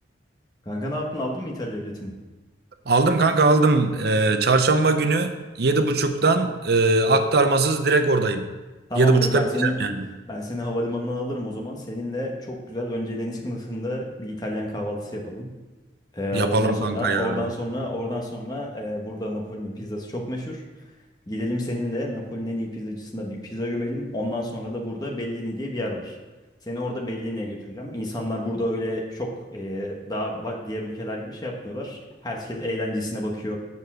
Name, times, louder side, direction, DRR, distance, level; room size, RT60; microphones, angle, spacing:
voice 1, 0.6-2.1 8.9-9.7 10.3-15.5 16.1-20.6 21.3-26.2 26.7-33.6, left 1 dB, 20° left, -1 dB, 1.3 m, -30 dB
voice 2, 2.9-5.3 5.6-8.5 9.0-10.1 16.3-17.4, right 3 dB, 55° right, 8 dB, 0.6 m, -20 dB
7.1 x 6.7 x 6.1 m, 1.2 s
head